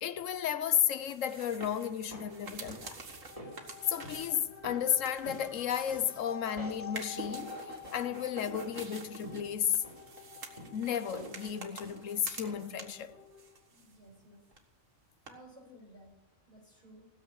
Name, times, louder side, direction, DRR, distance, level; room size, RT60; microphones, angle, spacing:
voice 1, 0.0-3.0 3.9-7.6 7.9-9.8 10.7-13.2, left 9 dB, 85° left, 1.2 m, -33 dB
sound 1, 0.9-6.4 6.8-13.1 13.4-14.3 14.5-14.6 15.3-15.4, right 4 dB, 90° right, 2.0 m, -48 dB
sound 2, 1.9-12.8 13.1-13.2, equal, 25° right, 3.8 m, -50 dB
sound 3, 2.4-13.7, left 6 dB, 15° left, 1.8 m, -50 dB
voice 2, 13.7-14.4 15.3-16.1 16.5-17.1, right 1 dB, 35° left, 5.7 m, -56 dB
16.5 x 7.4 x 9.8 m
omnidirectional pair, 1.3 m